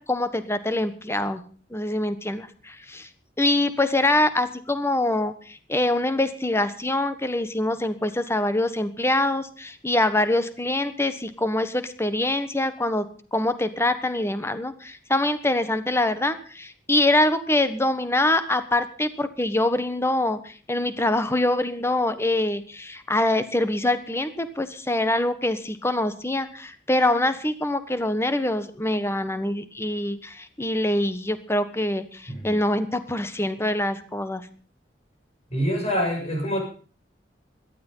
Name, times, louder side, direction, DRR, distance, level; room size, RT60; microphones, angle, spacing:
voice 1, 0.0-1.4 1.7-3.1 3.4-13.1 13.3-34.4, left 1 dB, 15° left, 11 dB, 1.3 m, -24 dB
voice 2, 35.5-36.6, equal, 35° left, 2 dB, 7.5 m, -25 dB
17.5 x 12.5 x 5.6 m, 0.40 s
head